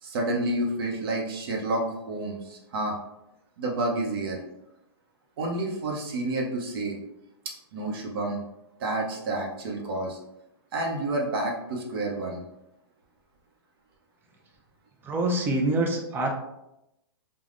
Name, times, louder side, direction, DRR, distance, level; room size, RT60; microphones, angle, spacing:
voice 1, 0.0-3.0 3.6-4.4 5.4-7.0 7.7-8.4 8.8-10.2 10.7-12.4, right 2 dB, 60° right, -1 dB, 0.7 m, -29 dB
voice 2, 15.0-16.3, right 2 dB, 15° right, 1 dB, 0.5 m, -25 dB
3.3 x 2.2 x 2.5 m, 0.87 s
hypercardioid pair, 130°, 14 cm